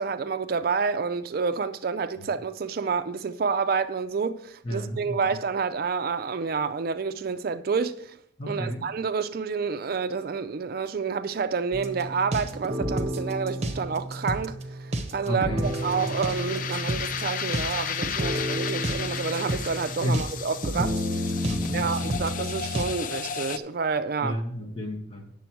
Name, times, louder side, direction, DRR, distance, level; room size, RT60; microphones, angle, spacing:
voice 1, 0.0-8.2 8.5-21.3 21.7-24.4, right 5 dB, 50° right, 0.4 m, -29 dB
voice 2, 4.6-5.3 8.4-8.8 15.3-16.1 20.0-20.3 21.5-22.2 24.2-25.4, equal, 30° left, 1.4 m, -32 dB
sound 1, 11.7-22.9, right 1 dB, 35° right, 0.9 m, -31 dB
sound 2, 15.6-23.6, left 7 dB, 45° left, 0.4 m, -34 dB
9.2 x 7.0 x 4.5 m
head